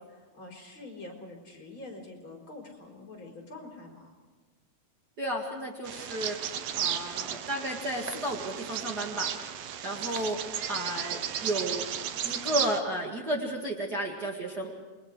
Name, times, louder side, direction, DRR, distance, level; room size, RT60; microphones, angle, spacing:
voice 1, 0.0-4.1, left 2 dB, 40° left, 0 dB, 5.0 m, -45 dB
voice 2, 5.2-6.4 6.8-9.3 9.8-11.9 12.2-14.7, right 1 dB, 35° right, -1 dB, 2.3 m, -33 dB
Bird vocalization bird call bird song, 5.9-12.8, right 9 dB, 70° right, 1.9 m, -34 dB
28.5 x 23.0 x 4.9 m, 1.3 s
omnidirectional pair, 3.4 m